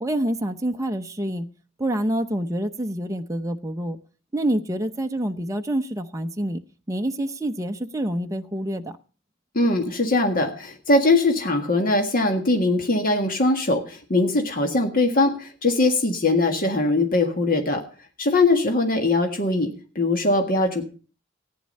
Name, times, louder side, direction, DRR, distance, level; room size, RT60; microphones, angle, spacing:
voice 1, 0.0-1.5 1.8-4.0 4.3-6.6 6.9-8.9, right 1 dB, 15° right, 0.7 m, -27 dB
voice 2, 9.5-17.8 18.2-20.8, left 2 dB, 45° left, 1.7 m, -21 dB
15.0 x 9.6 x 5.4 m
head